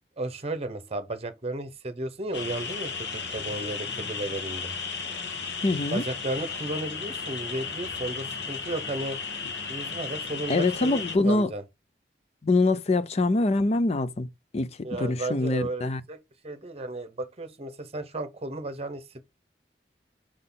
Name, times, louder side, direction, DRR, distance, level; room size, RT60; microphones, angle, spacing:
voice 1, 0.2-4.7 5.9-9.2 9.7-11.6 14.8-16.2 16.4-19.2, right 2 dB, 35° right, 0.9 m, -34 dB
sound 1, 2.3-11.2, left 5 dB, 75° left, 1.2 m, -34 dB
voice 2, 5.6-6.0 10.5-11.5 12.4-14.3 14.5-14.7 15.0-16.0, left 2 dB, 40° left, 0.6 m, -24 dB
6.4 x 3.9 x 3.8 m
head